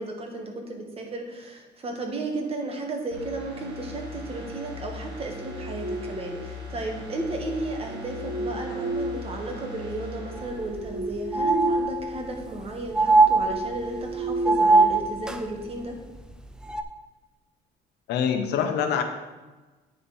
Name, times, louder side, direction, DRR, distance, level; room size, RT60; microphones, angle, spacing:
voice 1, 0.0-16.0, right 2 dB, 35° right, 2 dB, 1.7 m, -34 dB
sound 1, 3.1-11.8 12.1-12.2, left 2 dB, 90° right, 2.3 m, -40 dB
sound 2, 5.1-6.6 7.6-9.7 10.2-12.1 12.4-12.6 13.1-15.5, right 1 dB, 55° right, 1.5 m, -33 dB
sound 3, 10.4-10.5 10.8-10.9 11.3-12.3 12.9-14.0 14.4-15.4 16.7-16.8, right 3 dB, 5° right, 0.5 m, -21 dB
voice 2, 18.1-19.0, left 7 dB, 80° left, 6 dB, 0.9 m, -24 dB
9.1 x 5.3 x 4.2 m, 1.2 s
cardioid pair, 110°, 17 cm